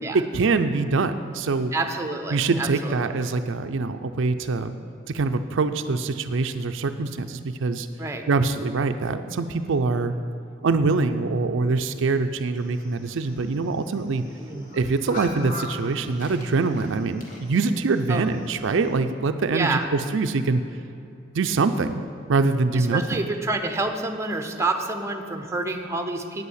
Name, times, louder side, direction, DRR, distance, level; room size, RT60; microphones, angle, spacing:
voice 1, 0.1-1.7 2.3-4.7 5.1-7.9 8.3-10.1 10.6-14.2 14.7-20.6 21.3-22.0 22.3-23.2, right 3 dB, 65° right, 8 dB, 0.5 m, -24 dB
voice 2, 1.7-3.2 8.0-8.3 14.4-14.7 18.1-18.2 19.5-19.8 22.7-26.4, right 3 dB, 15° right, 5 dB, 0.8 m, -28 dB
sound 1, 12.5-18.9, left 1 dB, 40° left, 1.8 m, -42 dB
9.1 x 8.3 x 8.0 m, 2.6 s
head